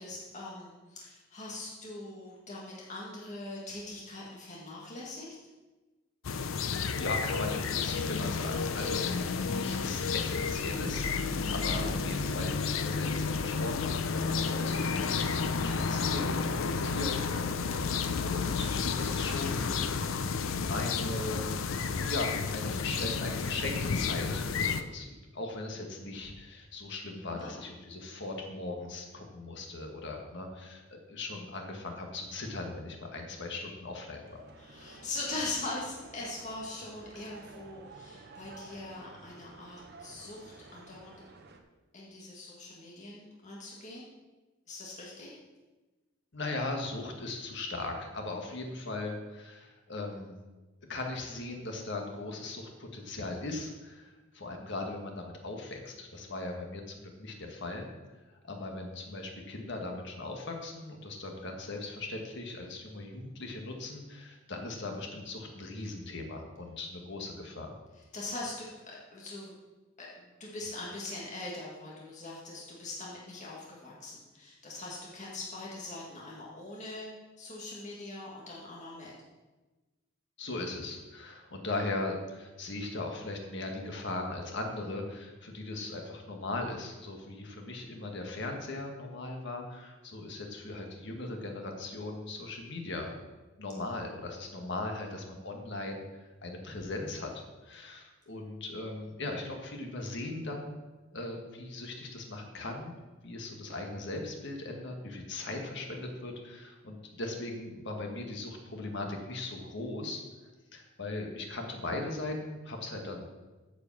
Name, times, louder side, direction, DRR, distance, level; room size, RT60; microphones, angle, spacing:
voice 1, 0.0-5.4 27.2-27.6 34.6-41.1 41.9-44.0 44.7-45.3 68.1-69.5 70.0-77.1 77.4-79.1, left 2 dB, 35° left, -4 dB, 1.8 m, -42 dB
sound 1, 6.2-24.8, left 5 dB, 80° left, 0.5 m, -31 dB
voice 2, 6.7-19.8 20.7-21.5 22.1-30.8 31.1-34.4 46.3-50.3 50.9-57.9 58.5-67.7 80.4-93.1 93.6-96.0 96.4-100.8 101.1-102.9 103.2-110.2 110.7-113.3, left 2 dB, 60° left, 3 dB, 1.5 m, -39 dB
sound 2, 33.9-41.6, right 3 dB, 55° right, 0.9 m, -52 dB
9.3 x 5.1 x 7.2 m, 1.2 s
head